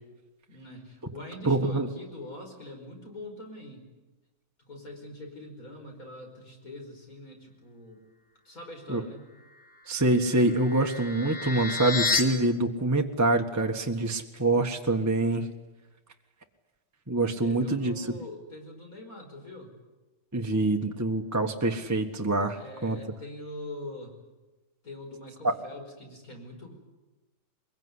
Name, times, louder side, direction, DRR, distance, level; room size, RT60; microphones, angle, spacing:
voice 1, 0.5-3.8 4.7-8.0 8.4-9.2 17.4-19.7 22.5-24.2 24.8-26.7, left 1 dB, 45° left, 2 dB, 5.8 m, -43 dB
voice 2, 1.4-1.9 8.9-9.0 9.9-15.5 17.1-18.1 20.3-23.0 25.4-25.6, right 2 dB, 10° right, 3 dB, 1.2 m, -25 dB
sound 1, 10.0-12.2, left 3 dB, 70° left, 3.2 m, -31 dB
23.5 x 22.5 x 9.8 m, 1.1 s
omnidirectional pair, 2.1 m